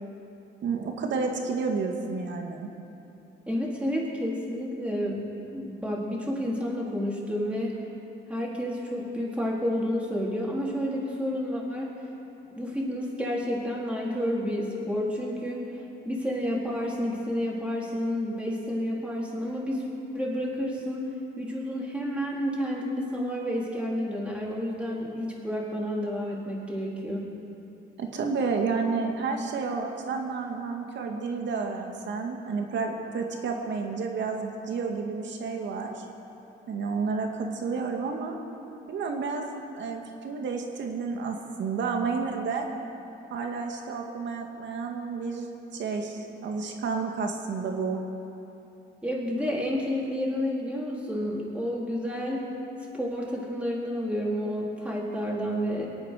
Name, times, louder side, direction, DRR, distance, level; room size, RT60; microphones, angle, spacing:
voice 1, 0.6-2.7 28.0-36.1 36.7-38.4 38.9-42.7 43.3-48.0, right 4 dB, 65° right, 2 dB, 2.1 m, -31 dB
voice 2, 3.5-5.2 5.5-7.7 8.3-11.9 12.5-15.6 16.0-19.8 20.1-21.0 21.4-27.2 49.0-52.4 52.9-55.9, equal, 5° right, -4 dB, 4.2 m, -30 dB
23.5 x 9.0 x 6.6 m, 2.8 s
cardioid pair, 90°, 20 cm